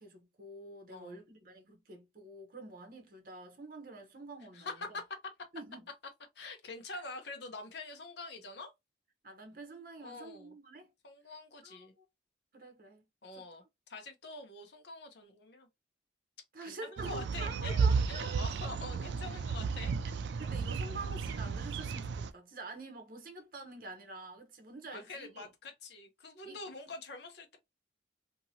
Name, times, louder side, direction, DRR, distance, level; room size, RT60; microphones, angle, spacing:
voice 1, 0.0-4.7 5.5-5.8 6.9-7.0 9.2-10.9 11.6-12.0 12.5-13.0 13.4-13.5 16.5-18.4 20.4-25.5 26.4-26.6, right 3 dB, 50° right, 0.9 m, -47 dB
voice 2, 4.5-5.2 6.4-8.7 10.0-10.5 11.0-11.9 13.2-15.7 16.6-19.9 24.9-27.6, left 3 dB, 65° left, 0.7 m, -45 dB
sound 1, 17.0-22.3, right 5 dB, 70° right, 0.3 m, -33 dB
2.8 x 2.6 x 2.8 m
head